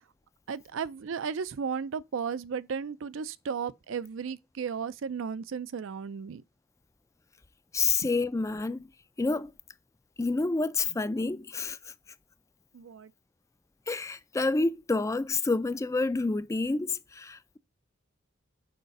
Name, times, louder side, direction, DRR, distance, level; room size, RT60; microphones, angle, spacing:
voice 1, 0.5-6.4 8.0-8.1 12.7-13.1, right 6 dB, 70° right, 0.4 m, -34 dB
voice 2, 7.7-8.9 9.2-9.5 10.2-11.9 13.9-17.6, left 3 dB, 15° left, 0.3 m, -28 dB
6.6 x 4.8 x 5.3 m
head